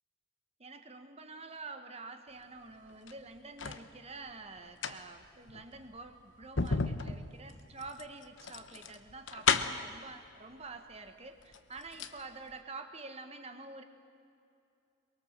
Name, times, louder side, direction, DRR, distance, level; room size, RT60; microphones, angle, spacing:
voice 1, 0.6-13.8, right 3 dB, 30° right, 7 dB, 1.5 m, -48 dB
sound 1, 2.9-3.9 4.6-10.0 10.9-11.0 11.4-12.2 12.5-12.6, left 5 dB, 65° left, 1.1 m, -34 dB
23.0 x 23.0 x 7.5 m, 2.6 s
head